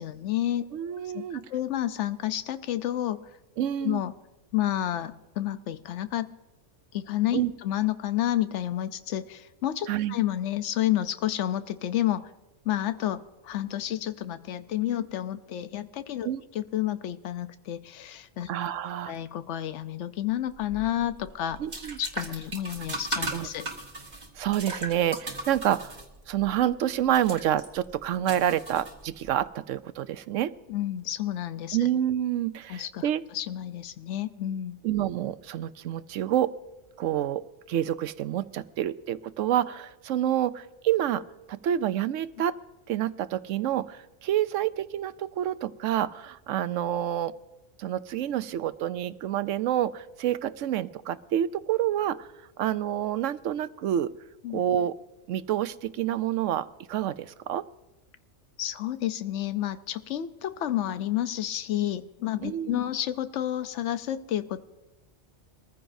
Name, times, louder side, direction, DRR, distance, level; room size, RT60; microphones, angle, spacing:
voice 1, 0.0-0.7 1.1-3.2 3.8-4.1 4.5-6.3 6.9-12.3 12.6-16.3 16.5-18.5 18.8-21.6 22.0-23.7 30.7-31.9 32.7-34.8 54.4-54.6 58.6-64.6, left 12 dB, 75° left, 12 dB, 1.0 m, -30 dB
voice 2, 0.7-1.4 3.6-4.0 7.3-7.5 9.9-10.1 16.2-16.4 18.5-19.1 21.6-22.0 23.3-23.5 24.4-25.9 26.3-30.5 31.7-33.2 34.8-36.6 37.0-41.2 41.5-42.6 42.9-47.3 47.8-52.3 52.6-54.1 54.5-55.0 55.3-57.6 62.4-62.8, right 11 dB, 85° right, 14 dB, 1.0 m, -28 dB
sound 1, 20.5-29.4, right 2 dB, 35° right, 1.7 m, -38 dB
23.0 x 14.5 x 2.6 m, 1.1 s
omnidirectional pair, 1.3 m